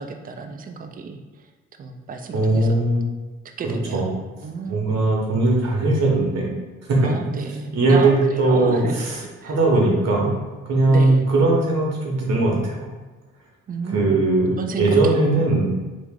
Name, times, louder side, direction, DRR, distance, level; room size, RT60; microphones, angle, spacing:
voice 1, 0.0-1.5 1.8-2.8 3.6-4.1 4.4-5.1 7.0-9.0 9.4-9.6 10.9-11.3 13.7-14.2 14.6-15.6, right 4 dB, 30° right, 5 dB, 0.4 m, -32 dB
voice 2, 2.3-3.0 3.6-4.1 4.7-6.5 6.9-7.1 7.7-9.2 9.4-10.3 10.7-12.9 13.9-15.7, right 2 dB, 60° right, -2 dB, 1.1 m, -19 dB
3.0 x 2.5 x 3.6 m, 1.2 s
cardioid pair, 90°, 30 cm